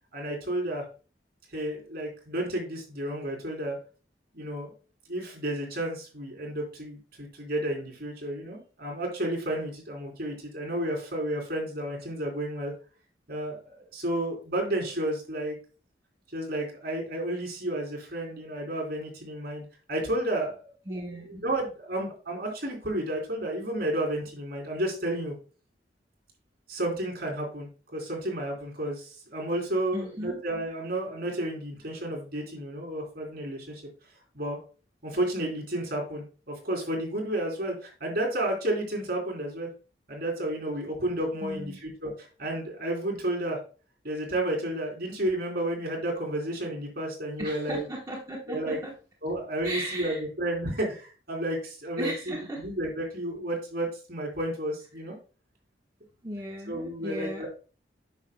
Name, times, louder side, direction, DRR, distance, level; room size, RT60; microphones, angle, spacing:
voice 1, 0.1-0.8 1.5-3.8 4.3-4.7 5.1-12.7 13.3-15.6 16.3-19.6 19.9-20.6 20.9-25.3 26.7-33.8 34.3-34.6 35.0-39.7 40.1-43.6 44.0-47.9 48.5-48.8 49.2-52.3 52.6-55.1 56.7-57.5, right 1 dB, 55° right, -1 dB, 3.5 m, -31 dB
voice 2, 20.9-21.3 29.9-30.4 41.4-41.8 47.4-48.9 49.6-50.2 52.0-52.6 56.2-57.5, right 1 dB, 20° right, -2 dB, 1.2 m, -36 dB
9.5 x 6.3 x 2.2 m, 0.36 s
head